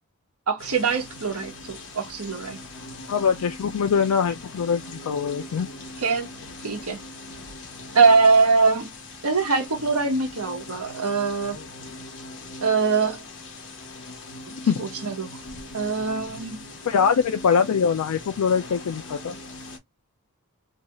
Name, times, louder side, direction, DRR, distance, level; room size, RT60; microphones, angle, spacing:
voice 1, 0.5-2.6 6.0-6.3 6.6-7.0 7.9-8.9 9.2-11.6 12.6-13.2 14.8-15.4 15.7-16.6, right 4 dB, 75° right, 1.0 m, -22 dB
sound 1, 0.6-19.8, left 2 dB, 60° left, 1.0 m, -41 dB
voice 2, 3.1-5.7 14.7-14.9 16.9-19.3, left 6 dB, 85° left, 0.4 m, -23 dB
2.8 x 2.3 x 2.9 m
head